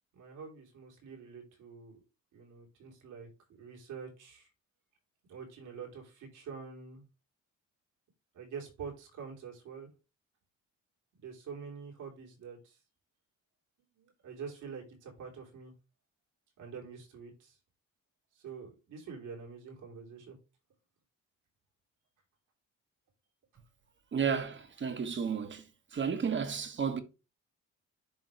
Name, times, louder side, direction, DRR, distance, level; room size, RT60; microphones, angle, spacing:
voice 1, 0.1-2.0 2.3-4.5 5.3-7.0 8.3-9.9 11.2-12.8 13.9-15.7 16.6-17.6 18.3-20.4, right 6 dB, 85° right, 3.7 m, -46 dB
voice 2, 24.1-25.6 25.9-27.0, right 6 dB, 40° right, 1.3 m, -32 dB
11.0 x 3.6 x 3.2 m
cardioid pair, 90°, 30 cm